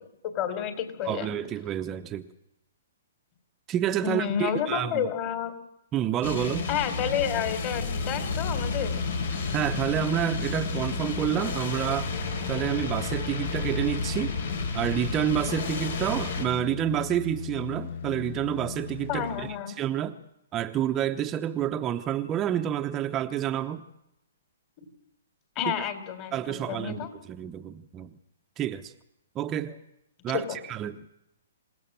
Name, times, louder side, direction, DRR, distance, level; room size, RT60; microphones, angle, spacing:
voice 1, 0.2-1.3 4.0-5.5 6.7-9.0 19.1-19.7 25.6-27.1 30.3-30.6, left 9 dB, 35° left, 3.8 m, -30 dB
voice 2, 1.0-2.3 3.7-5.1 5.9-6.7 9.5-12.1 12.5-14.4 14.7-20.2 20.5-23.8 26.3-28.1 28.6-28.9 29.3-29.8 30.2-31.0, right 11 dB, 25° right, 1.0 m, -29 dB
sound 1, 6.2-16.5, left 3 dB, 70° left, 6.3 m, -31 dB
sound 2, 8.0-19.6 20.0-20.1, left 8 dB, 55° left, 1.1 m, -38 dB
27.5 x 17.5 x 7.5 m
hypercardioid pair, 135°, 0 cm